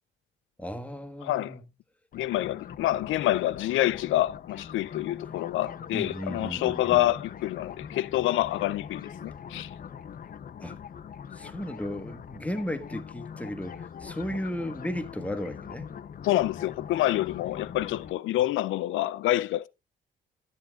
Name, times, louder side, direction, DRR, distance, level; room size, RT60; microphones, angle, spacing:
voice 1, 0.6-1.6 5.9-7.1 10.6-10.8 11.3-15.9, equal, 5° left, 1.4 m, -35 dB
voice 2, 1.2-1.6 2.1-9.7 16.2-19.7, left 15 dB, 80° left, 0.4 m, -27 dB
sound 1, 2.1-18.1, left 7 dB, 45° left, 0.7 m, -42 dB
13.0 x 9.7 x 2.3 m
cardioid pair, 90°, 20 cm